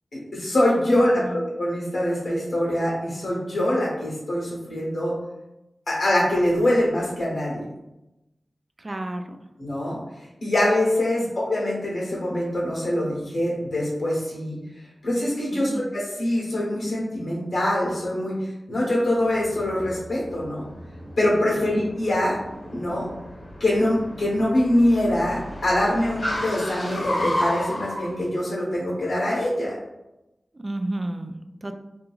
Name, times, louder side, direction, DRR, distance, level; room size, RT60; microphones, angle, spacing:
voice 1, 0.3-5.1 5.9-7.6 9.6-10.0 10.4-14.5 15.0-20.6 21.2-22.4 22.7-23.1 23.6-29.7, left 1 dB, 80° left, -5 dB, 1.1 m, -24 dB
voice 2, 1.2-1.5 8.8-9.4 11.2-11.3 15.7-15.9 21.6-21.8 30.5-31.8, right 1 dB, 40° right, 6 dB, 0.3 m, -32 dB
Car, 19.2-28.1, left 1 dB, 60° left, 0.9 m, -33 dB
2.7 x 2.7 x 2.4 m, 0.95 s
cardioid pair, 40°, 0 cm